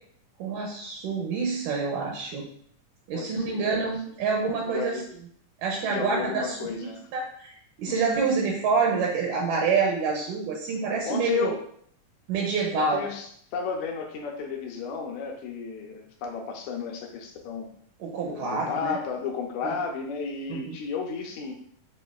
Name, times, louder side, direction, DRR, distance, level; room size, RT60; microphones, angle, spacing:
voice 1, 0.4-2.5 3.1-5.0 5.6-6.7 7.1-11.5 12.3-13.0 18.0-19.0 20.5-20.8, right 4 dB, 80° right, 0 dB, 2.1 m, -27 dB
voice 2, 3.1-3.9 4.7-5.1 5.9-7.0 7.9-8.2 11.0-11.6 12.7-17.7 18.3-21.5, left 6 dB, 75° left, 1 dB, 1.7 m, -33 dB
6.6 x 2.5 x 2.3 m, 0.63 s
omnidirectional pair, 3.9 m